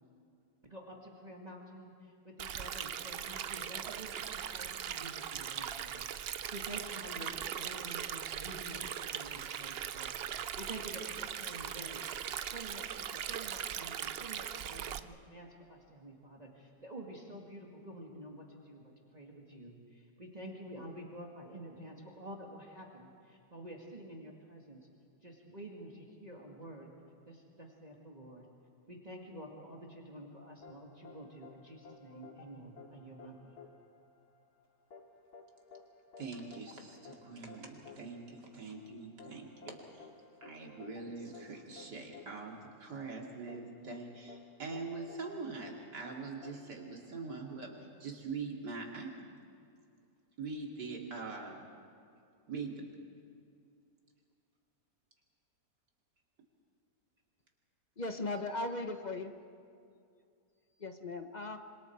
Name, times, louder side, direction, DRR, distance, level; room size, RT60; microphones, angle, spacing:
voice 1, 0.7-12.0 12.5-12.8 13.1-24.9 25.2-26.9 27.3-28.5 28.9-33.6, right 1 dB, 25° right, -1 dB, 2.2 m, -49 dB
Stream, 2.4-15.0, right 9 dB, 70° right, 0.5 m, -40 dB
sound 1, 30.6-47.5, left 4 dB, 70° left, 2.5 m, -55 dB
voice 2, 36.2-40.1 40.4-47.7 48.0-49.3 50.4-51.6 52.5-52.9, right 4 dB, 90° right, 0 dB, 3.3 m, -43 dB
voice 3, 58.0-59.3 60.8-61.6, left 2 dB, 30° left, 7 dB, 1.0 m, -38 dB
26.5 x 25.5 x 4.7 m, 2.4 s
omnidirectional pair, 1.7 m